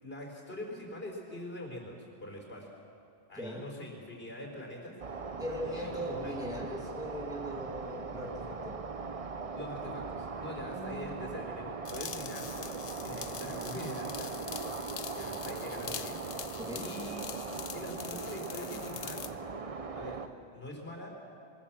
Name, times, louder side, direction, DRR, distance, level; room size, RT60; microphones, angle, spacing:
voice 1, 0.0-2.7 3.3-4.9 5.6-6.6 9.5-14.6 15.1-16.4 16.8-17.5 17.7-19.3 19.9-20.2 20.5-21.1, left 1 dB, 60° left, 1 dB, 4.5 m, -43 dB
voice 2, 3.3-3.7 5.4-8.8 10.7-11.4 16.6-16.9, equal, 5° right, -2 dB, 2.5 m, -40 dB
sound 1, 5.0-20.3, right 4 dB, 35° right, 0.8 m, -40 dB
sound 2, 11.8-19.3, left 8 dB, 85° left, 1.1 m, -44 dB
22.5 x 20.5 x 7.3 m, 2.6 s
omnidirectional pair, 1.1 m